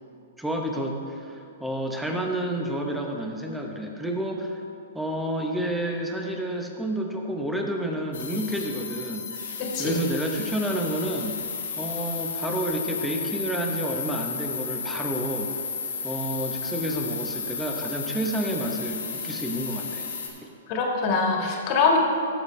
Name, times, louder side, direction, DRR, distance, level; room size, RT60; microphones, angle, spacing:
voice 1, 0.4-4.6 4.9-9.3 9.8-11.4 11.8-15.5 16.0-20.1, right 1 dB, 5° right, 1 dB, 1.0 m, -30 dB
sound 1, 8.1-20.3, left 6 dB, 85° left, 2.0 m, -33 dB
voice 2, 9.6-10.0 20.7-22.0, left 4 dB, 40° left, 0 dB, 1.8 m, -23 dB
14.0 x 6.8 x 3.3 m, 2.5 s
hypercardioid pair, 135°, 0 cm